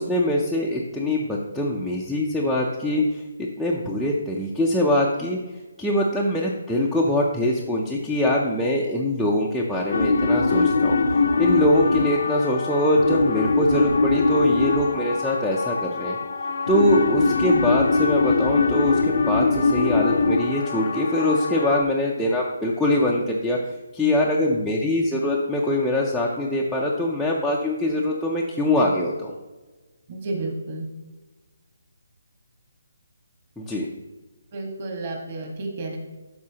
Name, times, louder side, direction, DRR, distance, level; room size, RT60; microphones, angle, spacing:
voice 1, 0.0-3.2 3.6-5.4 5.8-16.2 16.7-23.6 23.9-29.4 33.6-33.9, left 1 dB, ahead, -4 dB, 0.4 m, -23 dB
sound 1, 9.9-21.8, left 3 dB, 60° left, 0.6 m, -22 dB
voice 2, 30.1-30.8 34.5-36.0, right 2 dB, 30° right, 1 dB, 1.5 m, -31 dB
12.0 x 4.2 x 2.8 m, 1.2 s
hypercardioid pair, 170°, 0 cm